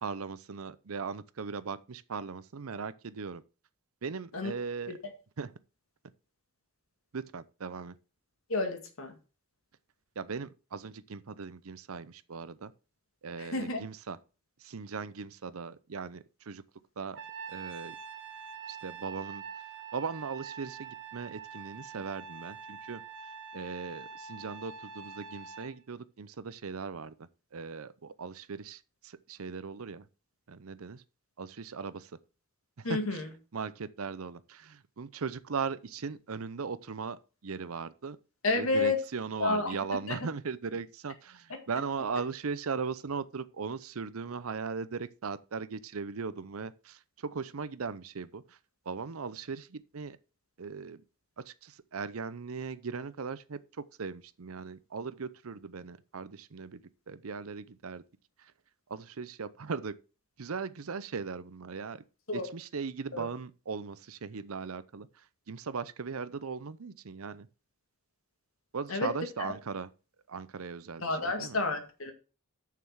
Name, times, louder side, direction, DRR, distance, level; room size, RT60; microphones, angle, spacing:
voice 1, 0.0-3.4 4.0-5.0 5.4-5.5 7.1-8.0 10.2-12.7 13.2-14.2 14.6-16.6 17.0-17.2 17.5-18.0 18.7-19.4 19.9-23.0 23.5-30.1 30.5-31.0 31.4-32.1 32.8-33.2 33.5-38.2 38.5-48.6 48.9-50.2 50.6-51.0 51.4-56.8 57.1-58.0 58.4-58.5 58.9-60.0 60.4-62.0 62.3-65.1 65.5-67.5 68.7-69.9 70.3-71.6, right 5 dB, 85° right, 0.7 m, -38 dB
voice 2, 8.5-9.1 13.4-13.9 32.8-33.3 38.4-39.0 39.4-39.8 40.1-40.2 62.3-62.5 63.1-63.3 68.9-69.5 71.0-72.1, left 3 dB, 75° left, 2.0 m, -30 dB
Trumpet, 17.1-25.7, right 6 dB, 60° right, 1.4 m, -45 dB
6.7 x 6.7 x 6.5 m
head